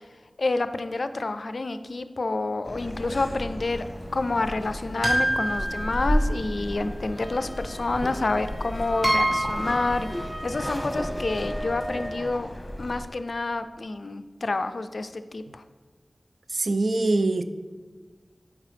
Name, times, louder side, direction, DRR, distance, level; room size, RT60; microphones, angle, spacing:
voice 1, 0.4-3.8 4.1-12.5 12.8-15.6, left 2 dB, 70° left, 10 dB, 0.3 m, -28 dB
sound 1, 2.6-13.0, equal, 25° left, 1.1 m, -33 dB
sound 2, 5.0-6.6 8.0-8.1 9.0-9.9, right 1 dB, 15° right, 1.4 m, -26 dB
Wind instrument woodwind instrument, 7.2-12.4, equal, 5° left, 0.7 m, -37 dB
voice 2, 16.5-17.4, right 2 dB, 80° right, 10 dB, 0.3 m, -23 dB
7.3 x 4.6 x 3.4 m, 1.4 s
wide cardioid pair, 65°, 0 cm